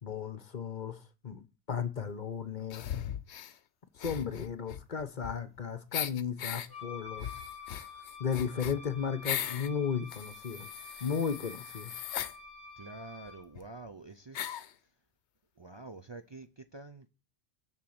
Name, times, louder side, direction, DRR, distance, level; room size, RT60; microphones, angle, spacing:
voice 1, 0.0-2.9 4.0-7.3 8.2-10.7 11.0-11.9, left 6 dB, 45° left, 0.9 m, -35 dB
sound 1, 2.7-3.5 4.0-5.6 5.9-6.7 7.2-9.7 10.1-12.4 13.3-13.4 13.6-13.7 14.3-14.7, left 10 dB, 90° left, 1.0 m, -38 dB
Wind instrument woodwind instrument, 6.7-13.5, left 4 dB, 75° right, 4.0 m, -49 dB
voice 2, 12.8-14.6 15.6-17.1, right 2 dB, 30° right, 0.6 m, -47 dB
7.2 x 6.4 x 7.9 m
omnidirectional pair, 1.1 m